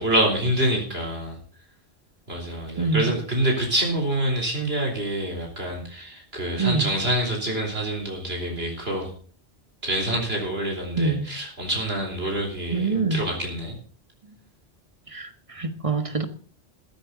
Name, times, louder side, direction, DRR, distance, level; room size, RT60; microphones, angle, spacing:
voice 1, 0.0-1.4 2.3-9.1 9.8-13.8, right 1 dB, 65° right, 4.2 m, -26 dB
voice 2, 2.8-3.1 6.6-6.9 11.0-11.3 12.7-13.2 15.1-16.3, right 4 dB, 30° right, 1.6 m, -25 dB
14.5 x 13.5 x 4.0 m
omnidirectional pair, 1.1 m